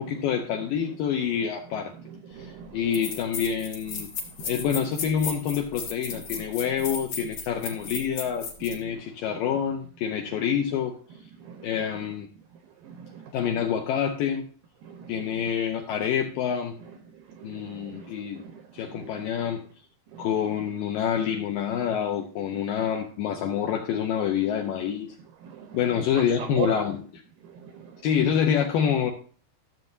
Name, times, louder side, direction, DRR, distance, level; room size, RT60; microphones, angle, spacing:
voice 1, 0.0-1.9 2.3-2.5 2.7-4.1 4.5-10.9 11.6-12.3 13.3-14.5 15.1-16.7 17.4-18.4 18.7-19.6 20.2-25.1 25.7-27.0 28.0-29.1, left 8 dB, 80° left, 4 dB, 2.1 m, -27 dB
voice 2, 2.3-2.8 4.4-4.5 6.1-6.2 11.4-11.7 12.8-13.3 14.8-15.3 17.3-18.1 18.4-18.6 18.9-19.3 20.1-20.3 25.4-25.8 26.1-26.7 27.6-28.0, right 9 dB, 85° right, 6 dB, 2.0 m, -39 dB
sound 1, 2.4-2.5 2.9-8.8, left 5 dB, 55° left, 2.3 m, -35 dB
13.5 x 7.6 x 2.6 m, 0.41 s
omnidirectional pair, 4.9 m